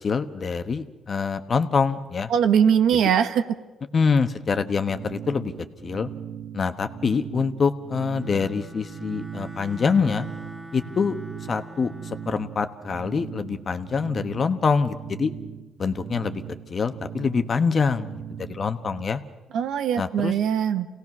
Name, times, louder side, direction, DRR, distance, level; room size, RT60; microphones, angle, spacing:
voice 1, 0.0-2.3 2.9-3.0 3.9-5.5 5.8-6.1 6.5-10.3 10.7-11.2 11.5-15.3 15.8-16.4 16.7-18.2 18.5-19.2 20.0-20.3, left 5 dB, 45° left, 9 dB, 1.2 m, -25 dB
voice 2, 2.3-3.4 19.5-20.9, right 8 dB, 80° right, 9 dB, 1.1 m, -21 dB
sound 1, 4.5-19.0, right 9 dB, 55° right, 1.1 m, -39 dB
Bowed string instrument, 8.0-12.5, right 1 dB, 10° right, 1.6 m, -42 dB
27.5 x 17.5 x 6.1 m, 1.2 s
cardioid pair, 90°, 0 cm